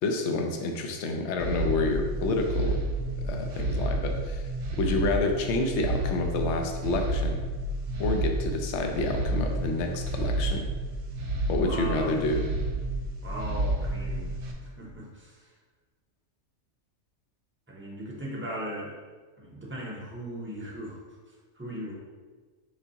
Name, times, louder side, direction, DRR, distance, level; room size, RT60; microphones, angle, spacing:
voice 1, 0.0-2.8 3.2-4.4 4.8-7.4 8.0-10.7 11.5-12.4, left 2 dB, 70° left, 3 dB, 0.8 m, -28 dB
sound 1, 1.4-14.5, right 2 dB, 75° right, 1.0 m, -30 dB
voice 2, 11.6-12.1 13.2-14.3 14.6-15.5 17.7-19.0 19.4-21.0 21.3-22.0, equal, 10° right, -3 dB, 0.6 m, -38 dB
5.0 x 3.4 x 2.8 m, 1.4 s
omnidirectional pair, 1.3 m